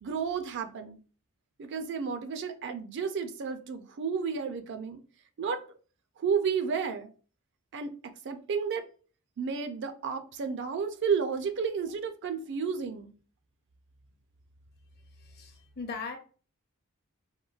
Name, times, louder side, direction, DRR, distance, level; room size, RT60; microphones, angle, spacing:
voice 1, 0.0-1.0 1.6-5.0 5.4-5.6 6.2-7.1 7.7-7.9 8.2-8.8 9.4-13.1, right 6 dB, 55° right, 0.4 m, -32 dB
voice 2, 15.1-16.2, left 5 dB, 45° left, 0.7 m, -39 dB
3.7 x 2.1 x 2.3 m
head